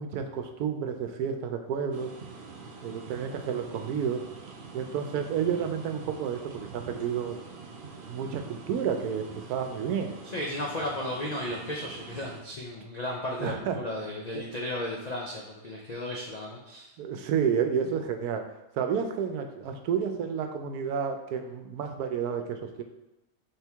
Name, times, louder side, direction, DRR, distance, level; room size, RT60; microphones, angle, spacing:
voice 1, 0.0-2.1 2.8-4.2 4.7-7.4 8.1-10.1 13.4-13.8 14.3-14.4 17.0-18.4 18.8-22.8, right 7 dB, 85° right, 6 dB, 1.1 m, -30 dB
sound 1, 1.9-12.4, right 4 dB, 60° right, 0.5 m, -45 dB
voice 2, 10.2-16.9, left 1 dB, 85° left, -2 dB, 0.3 m, -34 dB
4.5 x 3.4 x 3.4 m, 0.99 s
omnidirectional pair, 1.6 m